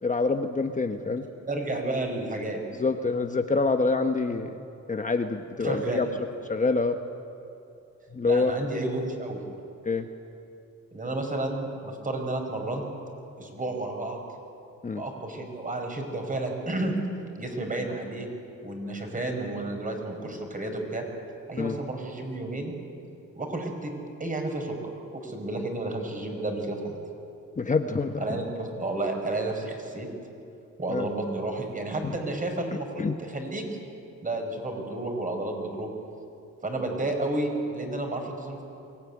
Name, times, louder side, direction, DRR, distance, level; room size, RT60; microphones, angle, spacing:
voice 1, 0.0-1.3 2.7-6.1 6.5-7.0 8.1-8.5 9.8-10.1 14.8-15.0 21.6-21.8 27.6-28.4 30.9-31.1 32.0-32.2 33.0-33.1, left 3 dB, 25° left, 6 dB, 1.2 m, -26 dB
voice 2, 1.5-2.6 5.6-6.0 8.2-9.4 10.9-12.8 13.4-14.2 14.9-17.0 17.4-18.3 18.6-21.0 21.5-22.8 23.4-23.9 24.2-24.8 25.1-27.0 28.2-30.1 30.8-33.8 34.2-35.9 36.6-38.6, right 2 dB, 25° right, 3 dB, 5.3 m, -31 dB
23.5 x 17.0 x 9.9 m, 2.7 s
cardioid pair, 90°, 30 cm